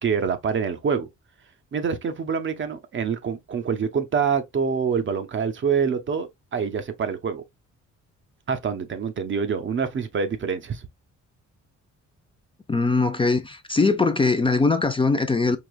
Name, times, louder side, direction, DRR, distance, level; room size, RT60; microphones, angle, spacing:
voice 1, 0.0-1.1 1.7-7.4 8.5-10.9, right 6 dB, 40° right, 0.7 m, -26 dB
voice 2, 12.7-15.6, left 3 dB, 15° left, 0.5 m, -21 dB
4.8 x 2.9 x 2.3 m
cardioid pair, 90°, 30 cm